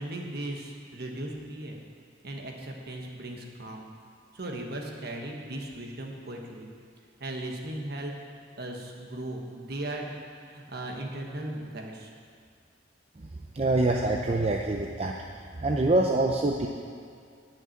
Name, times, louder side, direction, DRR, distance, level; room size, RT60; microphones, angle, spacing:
voice 1, 0.0-1.8 2.2-3.9 4.3-6.7 7.2-8.1 8.6-10.1 10.4-12.1, right 1 dB, 55° right, 1 dB, 1.4 m, -37 dB
voice 2, 13.5-15.2 15.6-16.7, right 2 dB, 30° right, 1 dB, 0.5 m, -25 dB
11.0 x 6.0 x 8.7 m, 2.2 s
head